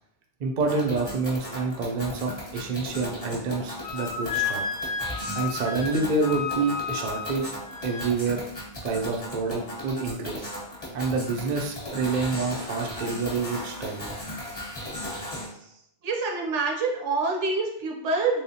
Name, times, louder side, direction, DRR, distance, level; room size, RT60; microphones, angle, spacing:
voice 1, 0.4-4.6 5.3-7.5 7.8-8.4 8.8-10.5 10.9-14.1, right 4 dB, 55° right, 1 dB, 0.5 m, -28 dB
sound 1, 0.6-15.5, left 1 dB, 35° left, 1.0 m, -37 dB
Wind instrument woodwind instrument, 3.8-8.1, left 5 dB, 85° left, 0.9 m, -32 dB
voice 2, 16.0-18.4, right 3 dB, 80° right, 0 dB, 1.0 m, -27 dB
3.3 x 3.2 x 2.7 m, 0.75 s
omnidirectional pair, 1.2 m